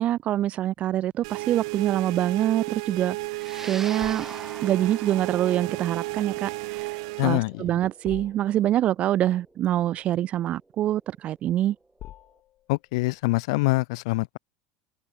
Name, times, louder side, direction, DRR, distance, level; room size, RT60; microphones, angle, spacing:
voice 1, 0.0-3.2 3.6-4.3 4.6-11.8, right 12 dB, 45° right, 0.4 m, -25 dB
sound 1, 1.0-13.5, left 14 dB, 50° left, 4.3 m, -51 dB
sound 2, 1.2-7.4, right 25 dB, 75° right, 0.6 m, -33 dB
sound 3, 3.4-11.9, right 2 dB, 10° right, 3.2 m, -44 dB
voice 2, 7.2-7.6 12.7-14.4, left 23 dB, 75° left, 0.3 m, -25 dB
supercardioid pair, 110°, 3 cm